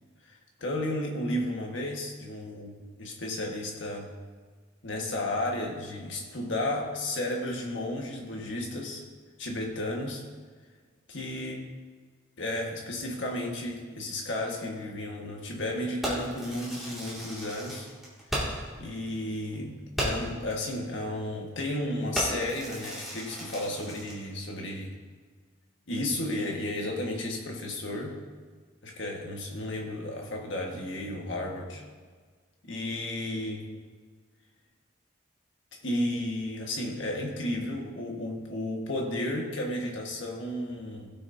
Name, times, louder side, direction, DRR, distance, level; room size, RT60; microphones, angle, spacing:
voice 1, 0.6-2.7 3.0-4.1 4.8-9.0 9.4-10.2 11.1-11.6 12.4-17.9 18.8-24.9 25.9-28.1 28.8-31.8 32.6-33.7 35.8-41.1, left 1 dB, 70° left, 0 dB, 1.6 m, -33 dB
Fireworks, 16.0-18.7 19.1-19.2 19.5-19.6 19.9-20.4 21.0-21.2 21.5-21.8 22.1-24.2, equal, ahead, 2.3 m, -35 dB
16.5 x 6.4 x 2.8 m, 1.5 s
head